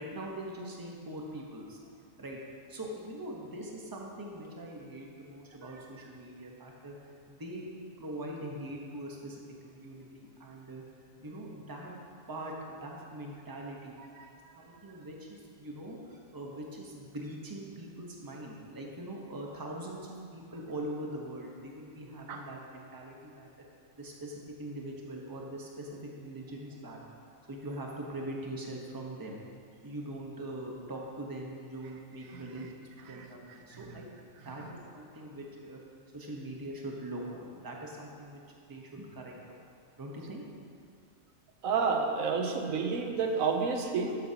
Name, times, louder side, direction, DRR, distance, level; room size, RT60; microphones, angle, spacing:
voice 1, 0.0-1.8 2.2-2.4 2.7-7.0 7.3-7.7 8.0-10.8 11.2-11.9 12.3-14.0 14.5-23.5 24.0-27.0 27.5-29.4 29.8-34.1 34.4-35.8 36.1-39.6 40.0-40.4, right 1 dB, 20° right, -1 dB, 1.0 m, -42 dB
voice 2, 41.6-44.2, right 5 dB, 85° right, 4 dB, 1.2 m, -30 dB
13.5 x 7.9 x 2.9 m, 2.3 s
omnidirectional pair, 1.4 m